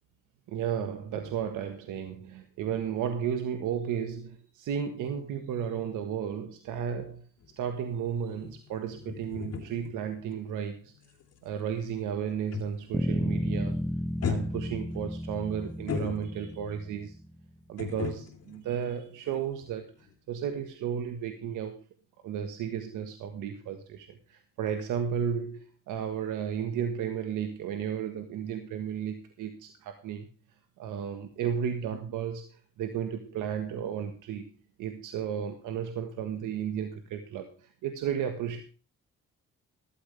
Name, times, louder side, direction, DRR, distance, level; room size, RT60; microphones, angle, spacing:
voice 1, 0.5-7.2 7.6-10.9 11.4-13.8 14.3-17.2 17.7-21.8 22.2-30.3 30.8-34.5 34.8-38.6, right 8 dB, 90° right, 1.6 m, -33 dB
sound 1, 7.4-13.1 13.3-13.7 14.2-16.7 17.8-19.7 20.0-20.1, left 6 dB, 55° left, 3.1 m, -39 dB
Bass guitar, 12.9-17.3, equal, ahead, 0.8 m, -33 dB
14.0 x 13.0 x 3.4 m
cardioid pair, 90°, 30 cm